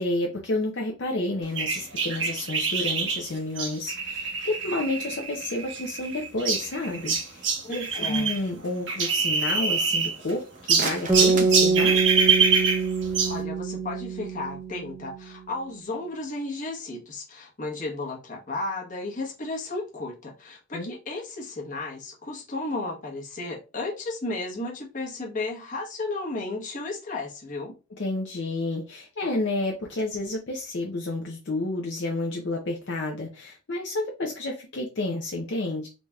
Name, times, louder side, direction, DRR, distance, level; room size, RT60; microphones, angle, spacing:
voice 1, 0.0-7.5 7.9-12.0 20.7-20.9 28.0-35.9, left 2 dB, 55° left, 0 dB, 0.6 m, -30 dB
sound 1, 1.6-8.4 8.6-10.3 10.7-13.4, right 5 dB, 60° right, 1.0 m, -25 dB
voice 2, 7.6-8.3 13.2-27.8, left 2 dB, 35° left, -1 dB, 1.0 m, -34 dB
sound 2, 10.5-12.5, right 4 dB, 40° right, 0.6 m, -36 dB
sound 3, 11.1-15.3, right 4 dB, 5° right, 0.7 m, -25 dB
3.9 x 3.2 x 2.3 m, 0.31 s
head